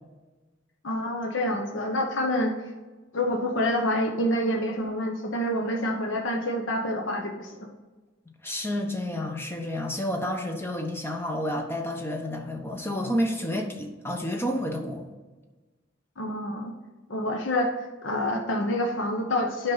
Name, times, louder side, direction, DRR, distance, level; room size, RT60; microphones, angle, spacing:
voice 1, 0.8-2.6 3.1-7.5 16.2-16.7 17.1-17.7 18.0-19.7, left 1 dB, 75° left, 3 dB, 1.0 m, -27 dB
voice 2, 8.4-15.1, left 1 dB, 10° left, 3 dB, 0.9 m, -30 dB
8.8 x 5.7 x 4.0 m, 1.2 s
head